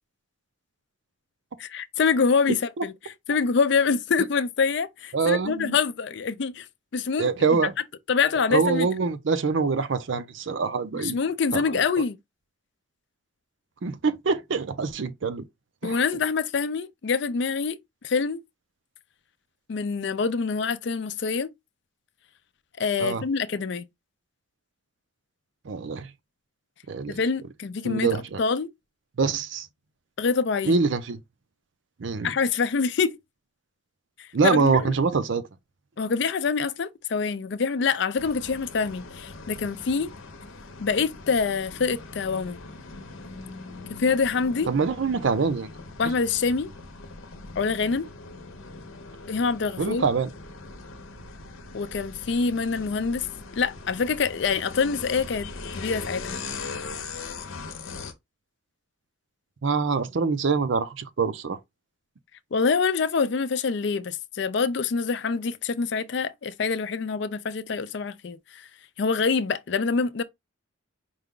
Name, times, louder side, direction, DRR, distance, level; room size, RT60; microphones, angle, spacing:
voice 1, 1.6-2.9 3.3-6.7 6.9-7.3 8.1-8.9 10.9-12.2 15.8-17.8 18.0-18.4 19.7-21.5 22.8-23.9 27.1-28.7 30.2-30.8 32.2-33.2 34.2-34.9 36.0-40.1 40.8-42.6 43.9-44.7 46.0-46.7 47.6-48.1 49.3-50.1 51.7-53.3 53.5-55.5 55.7-56.4 62.5-68.7 69.0-70.2, left 5 dB, 55° left, 0.4 m, -25 dB
voice 2, 5.1-5.8 7.2-7.7 8.5-11.2 11.5-11.8 13.8-15.5 15.8-16.0 23.0-23.2 25.7-26.1 26.9-27.2 27.8-28.4 29.2-29.7 30.6-31.2 32.0-32.3 34.3-35.4 44.7-45.7 49.8-50.3 59.6-61.6, right 4 dB, 65° right, 0.5 m, -25 dB
sound 1, 38.2-58.1, left 3 dB, 80° left, 0.8 m, -40 dB
4.8 x 2.2 x 3.6 m
head